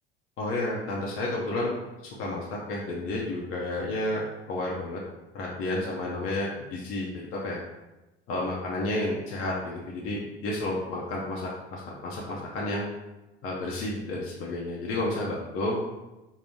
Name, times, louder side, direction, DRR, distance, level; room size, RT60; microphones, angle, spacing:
voice 1, 0.4-1.7 2.2-5.0 5.3-7.6 8.3-12.8 13.4-15.8, left 2 dB, 45° left, -4 dB, 0.7 m, -31 dB
3.8 x 2.1 x 3.5 m, 1.0 s
figure-of-eight pair, 65°, 31 cm